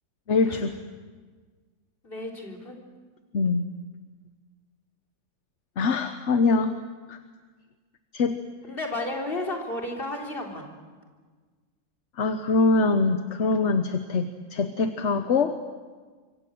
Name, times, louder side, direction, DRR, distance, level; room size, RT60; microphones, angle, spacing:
voice 1, 0.3-0.7 3.3-3.7 5.8-6.8 7.1-7.2 8.1-8.4 12.2-15.6, left 3 dB, 50° left, 8 dB, 1.2 m, -23 dB
voice 2, 2.0-2.8 8.6-10.7, left 2 dB, 35° left, 0 dB, 3.9 m, -33 dB
26.0 x 24.5 x 7.8 m, 1.5 s
omnidirectional pair, 1.7 m